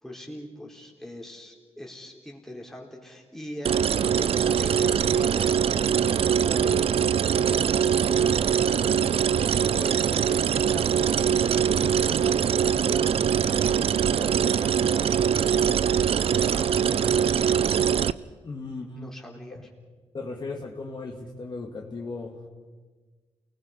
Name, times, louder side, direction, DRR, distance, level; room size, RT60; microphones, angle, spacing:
voice 1, 0.0-15.3 15.5-17.7 19.0-19.7, left 1 dB, 5° left, -1 dB, 3.9 m, -42 dB
sound 1, 3.6-18.1, right 8 dB, 60° right, 0.5 m, -23 dB
voice 2, 18.4-19.2 19.5-19.7 20.1-22.5, left 3 dB, 40° left, 0 dB, 2.4 m, -36 dB
28.5 x 20.0 x 5.4 m, 1.4 s
cardioid pair, 105°, 11 cm